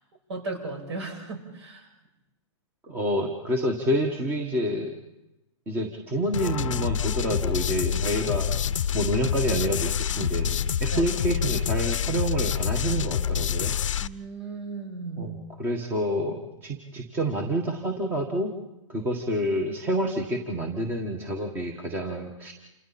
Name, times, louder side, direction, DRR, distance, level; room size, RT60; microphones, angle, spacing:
voice 1, 0.3-1.9 10.9-11.0 14.0-15.4, right 3 dB, 60° right, 4 dB, 6.6 m, -36 dB
voice 2, 2.8-4.9 5.7-8.5 8.9-13.7 15.2-18.5 18.9-22.5, equal, 15° right, 3 dB, 1.6 m, -28 dB
sound 1, 6.3-14.1, left 8 dB, 75° left, 0.8 m, -27 dB
28.5 x 27.5 x 4.3 m, 0.95 s
hypercardioid pair, 160°, 17 cm